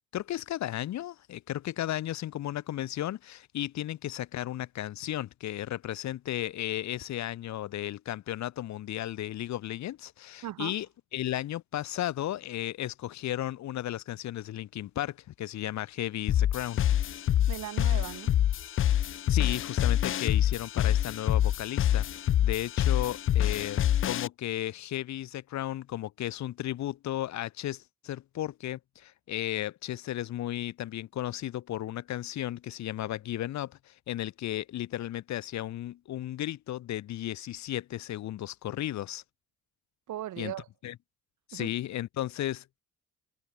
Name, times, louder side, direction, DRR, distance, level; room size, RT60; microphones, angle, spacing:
voice 1, 0.1-10.9 11.1-16.8 19.3-39.2 40.4-40.5 40.8-40.9 41.5-42.8, left 13 dB, 65° left, 0.9 m, -34 dB
voice 2, 10.4-10.7 17.5-18.3 40.1-40.7 41.5-41.7, right 13 dB, 75° right, 2.8 m, -38 dB
sound 1, 16.3-24.3, left 11 dB, 45° left, 0.5 m, -26 dB
cardioid pair, 90°, 30 cm